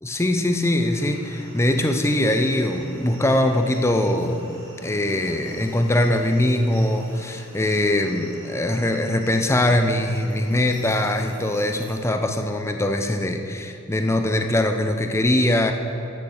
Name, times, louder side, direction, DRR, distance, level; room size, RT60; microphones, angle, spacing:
voice 1, 0.0-15.7, left 1 dB, 15° left, 5 dB, 0.6 m, -22 dB
sound 1, 0.9-12.0, right 1 dB, 20° right, 2.6 m, -44 dB
13.0 x 6.3 x 6.7 m, 2.7 s
head